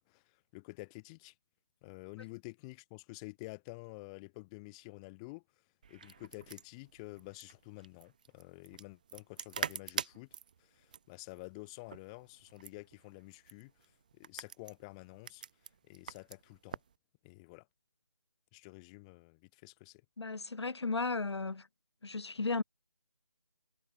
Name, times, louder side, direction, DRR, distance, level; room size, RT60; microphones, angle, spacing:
voice 1, 0.0-1.3 1.8-5.4 5.9-10.3 10.6-15.4 15.9-16.8 17.2-17.7 18.5-20.0, left 27 dB, 10° left, 4.7 m, -50 dB
sound 1, 5.8-17.0, right 7 dB, 15° right, 0.7 m, -45 dB
voice 2, 20.2-21.7 22.0-22.6, left 3 dB, 60° left, 2.7 m, -35 dB
figure-of-eight pair, 165°, 16 cm